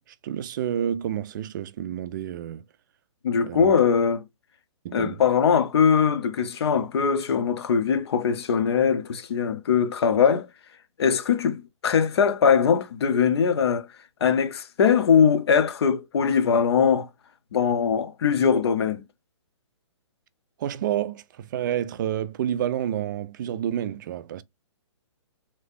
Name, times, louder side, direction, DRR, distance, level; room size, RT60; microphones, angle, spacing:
voice 1, 0.2-2.6 3.4-3.8 4.8-5.2 20.6-24.4, right 10 dB, 40° right, 0.4 m, -29 dB
voice 2, 3.2-4.2 4.9-10.5 11.0-13.9 14.2-17.1 17.5-19.0, left 7 dB, 55° left, 0.8 m, -21 dB
3.2 x 3.0 x 2.5 m
figure-of-eight pair, 130°, 16 cm